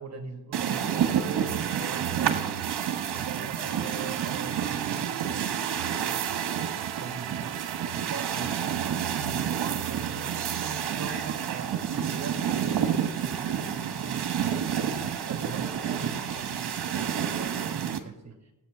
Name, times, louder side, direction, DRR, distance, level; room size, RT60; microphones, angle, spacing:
voice 1, 0.0-2.6 3.1-7.6 7.9-10.3 10.6-14.3 14.7-18.5, right 4 dB, 35° right, 3 dB, 2.2 m, -42 dB
sound 1, 0.5-18.0, right 8 dB, 60° right, 1.4 m, -29 dB
sound 2, 1.1-12.4, right 14 dB, 75° right, 0.7 m, -40 dB
sound 3, 10.8-17.6, left 1 dB, 15° left, 5.5 m, -50 dB
16.0 x 8.5 x 6.7 m, 1.0 s
cardioid pair, 85°, 45 cm